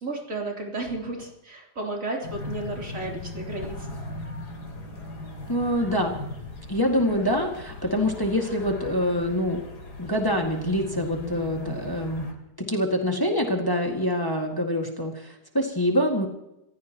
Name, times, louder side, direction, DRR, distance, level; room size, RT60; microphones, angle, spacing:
voice 1, 0.0-4.0 7.1-7.3, right 2 dB, 50° right, -1 dB, 3.9 m, -33 dB
sound 1, 2.2-12.3, left 2 dB, 75° left, 3.0 m, -38 dB
voice 2, 5.5-6.2 6.7-9.6 10.0-12.3 12.6-16.3, equal, 15° left, 1 dB, 1.9 m, -25 dB
27.0 x 15.5 x 3.0 m, 0.89 s
omnidirectional pair, 1.8 m